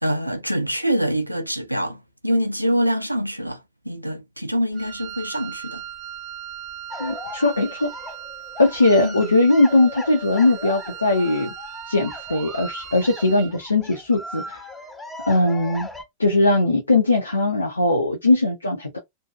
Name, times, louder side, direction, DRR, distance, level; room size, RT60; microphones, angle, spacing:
voice 1, 0.0-5.8 9.0-9.3, equal, 90° right, 0.4 m, -25 dB
Wind instrument woodwind instrument, 4.7-13.6, right 10 dB, 30° right, 0.5 m, -38 dB
sound 1, 6.9-16.0, left 2 dB, 10° left, 0.7 m, -38 dB
voice 2, 7.0-7.9 8.6-11.5 11.9-14.6 15.3-15.9 16.2-19.0, left 2 dB, 80° left, 0.5 m, -19 dB
2.6 x 2.2 x 2.4 m
figure-of-eight pair, 90°, 0 cm